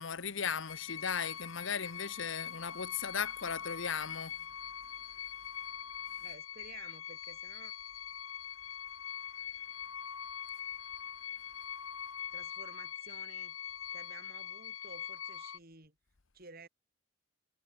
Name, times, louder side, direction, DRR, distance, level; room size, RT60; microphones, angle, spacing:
voice 1, 0.0-4.4, left 6 dB, 65° left, 1.0 m, -37 dB
sound 1, 0.7-15.6, left 9 dB, 85° left, 1.5 m, -43 dB
voice 2, 6.2-7.7 12.3-13.6 13.9-16.0 16.3-16.7, right 3 dB, 45° right, 5.7 m, -53 dB
head